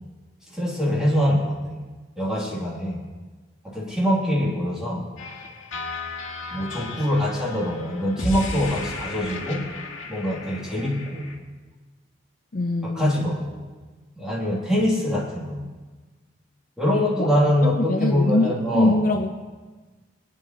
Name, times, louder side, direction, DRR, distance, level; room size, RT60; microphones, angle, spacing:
voice 1, 0.5-1.8 2.2-3.0 3.6-5.1 6.5-9.6 10.1-11.4 12.8-13.5 14.2-15.7 16.8-19.1, equal, 5° right, -6 dB, 2.9 m, -24 dB
sound 1, 5.2-11.4, left 3 dB, 75° left, 1.8 m, -34 dB
voice 2, 12.5-13.3 17.2-17.3 17.6-19.3, left 2 dB, 45° left, 5 dB, 0.6 m, -23 dB
23.0 x 9.3 x 3.0 m, 1.3 s
head